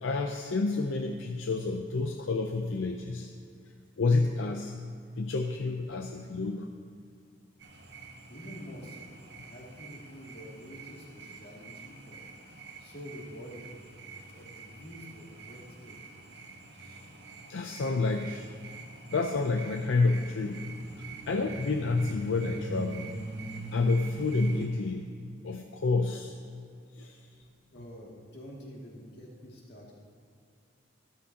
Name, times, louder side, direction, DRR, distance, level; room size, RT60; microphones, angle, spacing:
voice 1, 0.0-3.3 4.0-4.7 5.2-6.7 17.5-18.5 19.1-20.6 21.3-23.1 23.7-25.1 25.4-26.3 27.0-27.2, left 3 dB, 80° left, 4 dB, 0.5 m, -29 dB
sound 1, 7.6-24.7, right 2 dB, 60° right, 1.2 m, -43 dB
voice 2, 8.3-9.1 9.4-12.2 12.5-13.7 14.3-16.0 27.7-29.9, equal, 55° left, -3 dB, 2.4 m, -47 dB
13.5 x 12.0 x 2.9 m, 2.3 s
head